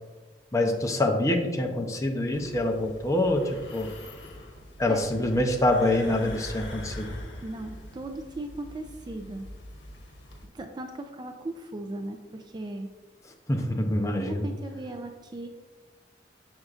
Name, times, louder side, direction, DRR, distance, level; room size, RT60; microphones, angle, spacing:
voice 1, 0.5-3.9 4.8-7.1 13.5-14.4, left 1 dB, 20° left, 3 dB, 0.6 m, -25 dB
sound 1, 2.3-10.5, left 1 dB, 80° left, 1.1 m, -43 dB
voice 2, 7.4-9.5 10.5-12.9 14.2-15.5, right 2 dB, 25° right, 5 dB, 0.3 m, -37 dB
6.4 x 6.1 x 2.4 m, 1.3 s
head